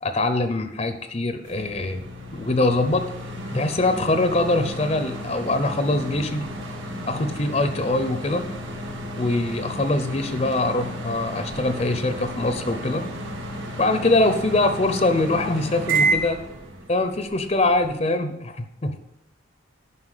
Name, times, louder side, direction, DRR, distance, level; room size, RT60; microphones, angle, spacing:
voice 1, 0.0-2.0 2.3-3.1 3.5-6.4 7.0-8.4 9.2-13.0 13.8-16.4 16.9-19.0, left 2 dB, 30° left, 8 dB, 0.6 m, -23 dB
sound 1, 1.4-17.9, right 2 dB, 70° right, 2.1 m, -32 dB
9.7 x 5.7 x 6.6 m, 0.86 s
head